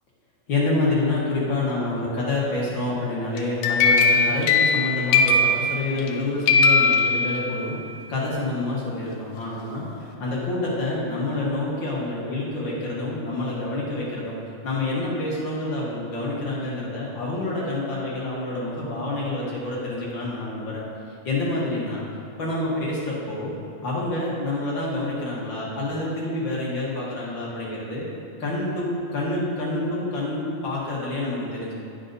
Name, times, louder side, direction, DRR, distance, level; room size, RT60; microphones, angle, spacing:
voice 1, 0.5-7.8 8.1-9.8 10.2-14.3 14.6-20.8 21.2-22.0 22.4-23.5 23.8-28.1 28.4-31.7, left 2 dB, 50° left, -6 dB, 1.7 m, -27 dB
sound 1, 3.4-6.2 6.5-7.8, left 3 dB, 85° left, 2.1 m, -20 dB
9.5 x 5.4 x 3.9 m, 2.7 s
omnidirectional pair, 3.4 m